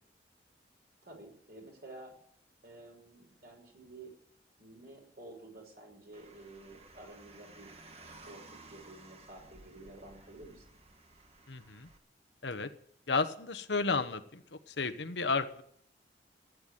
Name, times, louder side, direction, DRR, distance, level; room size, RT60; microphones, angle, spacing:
voice 1, 1.0-2.1 2.6-4.1 4.6-7.7 8.0-8.4 8.7-10.6, right 2 dB, 60° right, 1 dB, 6.2 m, -51 dB
Car, 6.1-12.0, right 2 dB, 35° right, 1.6 m, -55 dB
voice 2, 11.5-11.9 12.4-12.7 13.1-14.4 14.7-15.6, left 4 dB, 80° left, 10 dB, 1.2 m, -32 dB
15.0 x 9.4 x 9.3 m, 0.67 s
head